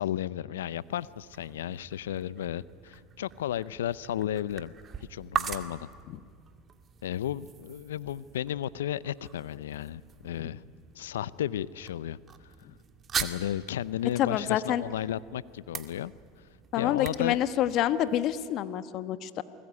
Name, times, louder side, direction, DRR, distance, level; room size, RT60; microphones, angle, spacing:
voice 1, 0.0-4.7 5.1-5.9 7.0-10.6 10.9-12.5 13.2-16.1 16.4-16.5 16.8-17.4, left 11 dB, 85° left, 19 dB, 0.6 m, -34 dB
sound 1, 0.7-18.5, right 7 dB, 35° right, 2.1 m, -42 dB
voice 2, 14.2-14.8 16.7-19.4, left 11 dB, 55° left, 13 dB, 1.3 m, -27 dB
28.0 x 20.5 x 9.7 m, 2.1 s
hypercardioid pair, 90°, 0 cm